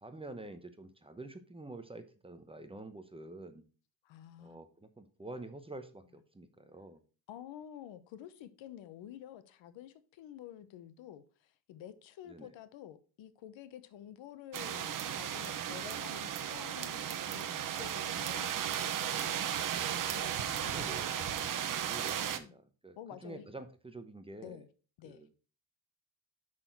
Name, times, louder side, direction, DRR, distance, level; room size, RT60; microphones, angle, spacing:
voice 1, 0.0-3.6 4.4-7.0 12.3-12.5 20.7-21.5 21.8-23.0 23.2-24.6 25.0-25.3, right 2 dB, 10° right, 0.8 m, -48 dB
voice 2, 4.0-4.6 7.3-19.6 20.1-21.1 22.0-22.6 23.0-23.5 24.4-24.7 25.0-25.2, left 11 dB, 75° left, 1.0 m, -50 dB
sound 1, 14.5-22.4, right 9 dB, 45° right, 0.8 m, -35 dB
6.2 x 6.1 x 4.5 m
cardioid pair, 120°, 45 cm